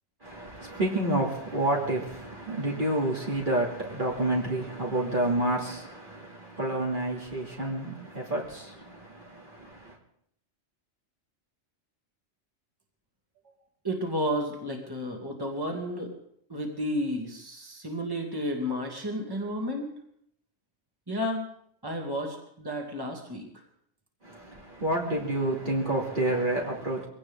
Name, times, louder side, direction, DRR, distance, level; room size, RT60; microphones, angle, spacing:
voice 1, 0.2-10.0 24.2-27.1, right 1 dB, 45° right, 2.8 m, -29 dB
voice 2, 13.8-16.1 16.5-19.9 21.1-21.4 21.8-23.5, equal, 20° right, 2.6 m, -32 dB
22.5 x 17.0 x 3.7 m
omnidirectional pair, 1.2 m